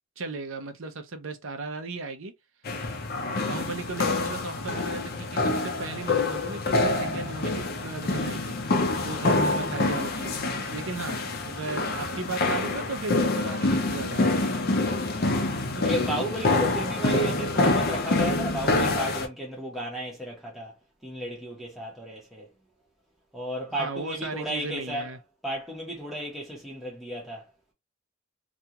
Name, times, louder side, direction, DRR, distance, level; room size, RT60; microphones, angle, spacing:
voice 1, 0.2-2.3 3.4-8.6 9.0-10.4 10.7-14.5 23.8-25.2, right 3 dB, 70° right, 0.6 m, -36 dB
sound 1, 2.7-19.3, left 2 dB, 50° left, 0.6 m, -26 dB
voice 2, 9.4-9.8 15.1-15.5 15.7-20.7 21.0-22.5 23.3-25.1 25.4-27.4, right 1 dB, ahead, 0.8 m, -34 dB
2.5 x 2.3 x 2.8 m
head